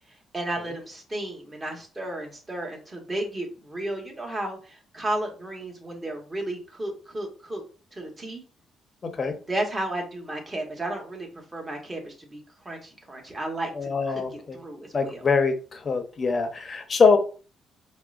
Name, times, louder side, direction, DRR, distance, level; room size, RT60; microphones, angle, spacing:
voice 1, 0.3-7.6 7.9-8.4 9.5-12.4 12.6-13.7 14.1-14.2 14.5-15.3, right 1 dB, 25° right, 1 dB, 1.1 m, -33 dB
voice 2, 13.7-14.6 14.9-17.2, left 5 dB, 40° left, 7 dB, 0.6 m, -23 dB
4.7 x 2.0 x 2.4 m, 0.37 s
cardioid pair, 90°, 0 cm